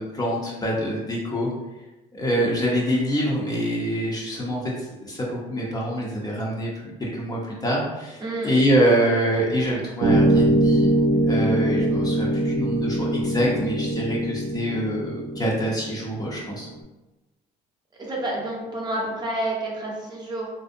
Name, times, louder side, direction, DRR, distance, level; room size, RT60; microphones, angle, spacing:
voice 1, 0.0-1.5 2.1-4.6 5.0-6.7 7.0-10.9 11.2-16.7, equal, 25° left, -4 dB, 0.6 m, -25 dB
voice 2, 8.2-8.6 18.0-20.5, right 1 dB, 25° right, -3 dB, 0.7 m, -29 dB
sound 1, 10.0-16.5, right 1 dB, 65° right, 0.6 m, -22 dB
2.5 x 2.0 x 2.5 m, 1.1 s
cardioid pair, 110°, 17 cm